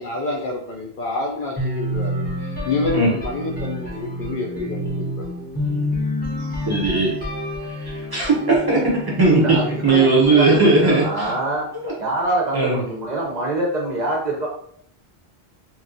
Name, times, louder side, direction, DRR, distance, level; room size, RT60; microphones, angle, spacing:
voice 1, 0.0-5.3 6.4-6.7, left 3 dB, 60° left, 0 dB, 0.6 m, -28 dB
sound 1, 1.6-11.4, left 1 dB, 10° left, 0.7 m, -29 dB
voice 2, 6.7-7.1 7.8-9.6 9.8-11.3 11.8-11.9 12.5-12.8, right 3 dB, 25° right, -4 dB, 0.8 m, -17 dB
voice 3, 9.4-10.0 10.3-11.7 12.0-14.5, right 1 dB, 50° right, -2 dB, 0.6 m, -25 dB
3.0 x 2.4 x 2.6 m, 0.65 s
omnidirectional pair, 1.0 m